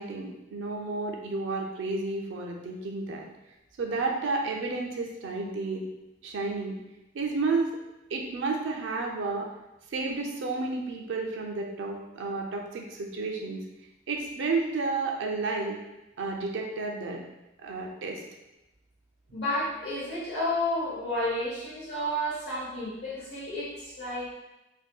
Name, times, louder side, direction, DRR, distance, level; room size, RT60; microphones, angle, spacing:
voice 1, 0.0-3.3 3.8-5.8 6.2-6.8 7.1-7.7 8.1-9.5 9.9-13.6 14.1-15.8 16.2-17.3 17.6-18.2, right 3 dB, 75° right, 1 dB, 0.4 m, -31 dB
voice 2, 19.3-24.3, left 1 dB, 55° left, -8 dB, 1.0 m, -31 dB
2.6 x 2.1 x 2.3 m, 0.96 s
head